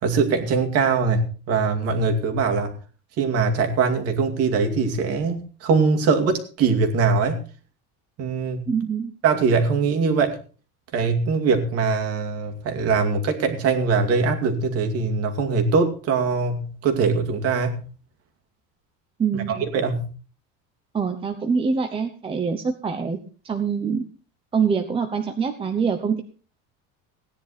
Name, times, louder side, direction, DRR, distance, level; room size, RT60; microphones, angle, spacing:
voice 1, 0.0-2.7 3.2-7.4 8.2-8.6 9.2-10.4 10.9-17.8 19.3-20.1, right 4 dB, 45° right, 4 dB, 2.4 m, -22 dB
voice 2, 8.7-9.1 19.2-19.6 20.9-23.2 23.4-24.0 24.5-26.2, right 6 dB, 15° right, 6 dB, 0.8 m, -24 dB
17.0 x 10.0 x 4.2 m, 0.37 s
cardioid pair, 170°, 35 cm